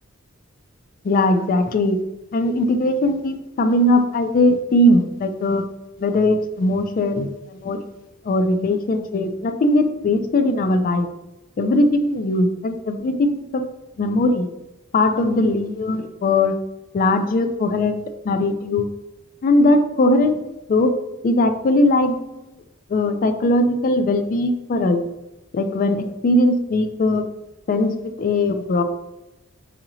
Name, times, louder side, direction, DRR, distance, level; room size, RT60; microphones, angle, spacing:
voice 1, 1.0-2.0 2.3-5.6 6.0-7.3 7.6-7.8 8.3-11.1 11.6-13.7 14.0-14.5 14.9-16.6 16.9-17.9 18.3-18.9 19.4-20.4 20.7-20.9 21.2-22.2 22.9-25.0 25.5-27.2 27.7-28.8, left 1 dB, 40° left, 8 dB, 0.3 m, -19 dB
4.2 x 2.8 x 2.6 m, 0.97 s
head